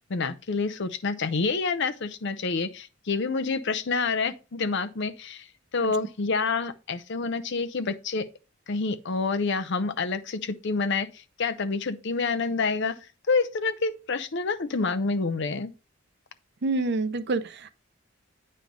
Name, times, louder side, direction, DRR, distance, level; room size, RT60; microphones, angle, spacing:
voice 1, 0.1-5.4 5.7-8.3 8.7-11.1 11.4-13.0 13.3-15.7, left 4 dB, 55° left, 0.6 m, -28 dB
voice 2, 16.6-17.7, right 3 dB, 55° right, 0.6 m, -27 dB
9.2 x 3.2 x 5.3 m
head